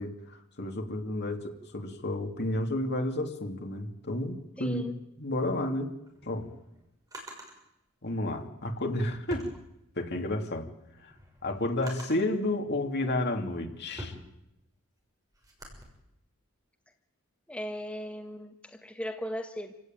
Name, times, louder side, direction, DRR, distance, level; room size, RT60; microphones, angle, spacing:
voice 1, 0.0-4.8 5.2-5.9 6.2-6.5 8.0-9.5 10.0-10.7 11.0-11.1 11.4-14.1, left 1 dB, 55° left, 4 dB, 2.9 m, -31 dB
voice 2, 4.6-4.9 17.5-19.7, equal, 5° left, 3 dB, 1.6 m, -37 dB
Drawer open or close, 5.9-7.6 8.6-10.2 10.7-12.4 13.0-15.8, equal, 20° right, 6.3 m, -46 dB
28.0 x 17.0 x 9.3 m, 0.85 s
head